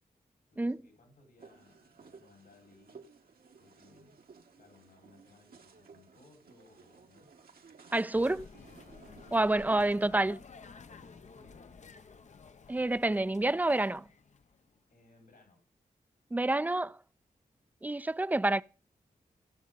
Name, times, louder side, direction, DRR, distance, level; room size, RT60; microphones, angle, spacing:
voice 1, 0.5-3.1 3.6-4.2 4.6-7.3 9.5-10.1 11.0-11.7 14.9-15.6, left 3 dB, 80° left, 4.9 m, -61 dB
sound 1, 1.4-10.0, right 5 dB, 70° right, 1.3 m, -56 dB
voice 2, 7.9-8.5 9.3-10.4 12.7-14.0 16.3-17.0 17.8-18.6, right 2 dB, 10° right, 0.4 m, -28 dB
sound 2, 8.1-14.8, left 5 dB, 50° left, 0.7 m, -53 dB
17.0 x 6.4 x 3.9 m
supercardioid pair, 40°, 16 cm